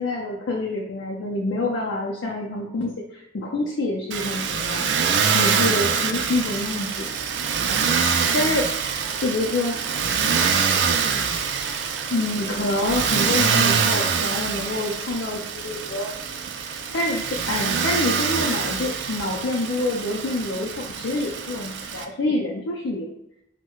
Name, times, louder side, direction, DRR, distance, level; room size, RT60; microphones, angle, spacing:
voice 1, 0.0-4.9 5.3-7.1 7.7-7.8 8.3-8.7 9.2-9.8 12.1-16.1 16.6-23.1, left 2 dB, 85° left, -2 dB, 0.5 m, -27 dB
Motor vehicle (road), 4.1-22.0, right 6 dB, 65° right, 0.3 m, -25 dB
4.4 x 2.1 x 2.3 m, 0.83 s
head